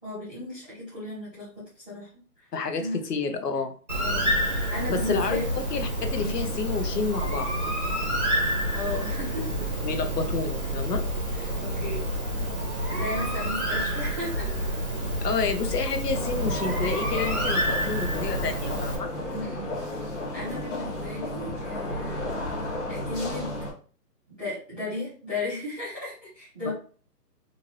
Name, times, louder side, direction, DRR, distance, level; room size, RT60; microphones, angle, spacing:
voice 1, 0.0-1.5 1.8-2.1 2.4-2.5 2.8-3.0 4.0-5.5 6.1-6.3 8.7-9.5 11.3-12.1 12.8-14.5 16.5-16.8 19.3-19.7 20.3-22.4 22.9-23.5 24.4-26.7, left 2 dB, 5° right, -14 dB, 1.1 m, -35 dB
voice 2, 2.5-3.7 4.9-5.4 5.7-7.5 9.8-11.0 15.2-19.1 26.7-26.8, left 4 dB, 75° left, 7 dB, 0.8 m, -29 dB
Bird, 3.9-19.0, equal, 30° right, 0.7 m, -28 dB
sound 1, 16.1-23.7, left 1 dB, 50° left, 1.1 m, -33 dB
2.8 x 2.6 x 3.0 m, 0.41 s
hypercardioid pair, 180°, 48 cm